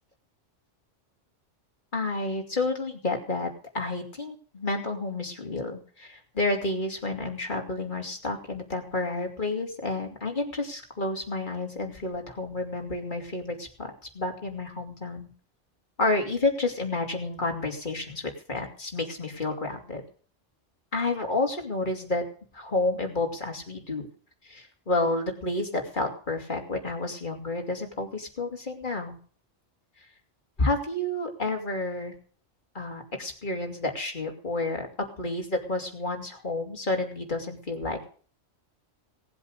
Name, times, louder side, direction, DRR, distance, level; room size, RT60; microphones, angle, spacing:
voice 1, 1.9-15.3 16.0-20.0 20.9-22.2 22.5-24.1 24.4-29.2 30.6-32.1 32.7-38.0, left 2 dB, 40° left, 2 dB, 3.0 m, -30 dB
18.5 x 7.9 x 6.6 m, 0.43 s
omnidirectional pair, 1.2 m